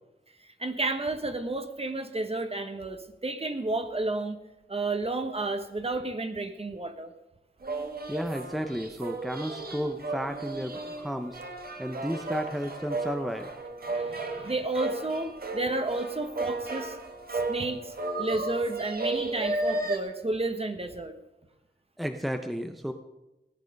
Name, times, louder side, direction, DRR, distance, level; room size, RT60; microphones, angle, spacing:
voice 1, 0.6-4.4 4.7-7.1 12.4-12.5 13.9-17.0 17.3-21.1, right 2 dB, 35° right, 7 dB, 1.3 m, -31 dB
sound 1, 7.6-20.0, right 2 dB, 55° right, 1.5 m, -34 dB
voice 2, 8.1-11.4 11.8-13.5 22.0-22.9, equal, ahead, 6 dB, 0.7 m, -33 dB
16.5 x 9.2 x 5.3 m, 0.98 s
wide cardioid pair, 100°, 18 cm